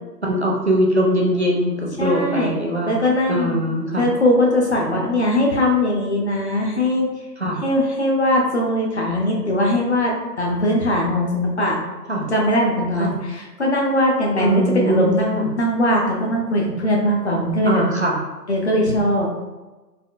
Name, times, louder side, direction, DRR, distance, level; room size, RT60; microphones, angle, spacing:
voice 1, 0.2-2.9 3.3-4.0 7.4-7.6 12.1-12.2 13.0-13.1 14.4-15.5 17.6-18.2, right 1 dB, 45° right, -1 dB, 0.5 m, -21 dB
voice 2, 2.0-2.5 2.8-3.6 4.0-7.1 7.6-11.8 12.3-17.8 18.5-19.3, left 1 dB, 40° left, -1 dB, 0.6 m, -20 dB
4.2 x 2.3 x 2.4 m, 1.2 s
hypercardioid pair, 165°, 50 cm